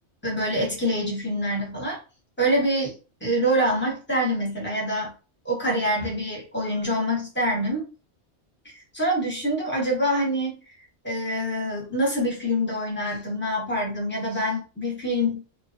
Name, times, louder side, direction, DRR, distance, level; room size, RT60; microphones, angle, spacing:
voice 1, 0.2-2.0 2.4-2.9 3.2-5.1 5.4-7.9 8.9-10.6 11.0-15.4, equal, 10° left, -3 dB, 1.0 m, -25 dB
2.9 x 2.3 x 2.5 m, 0.34 s
omnidirectional pair, 1.2 m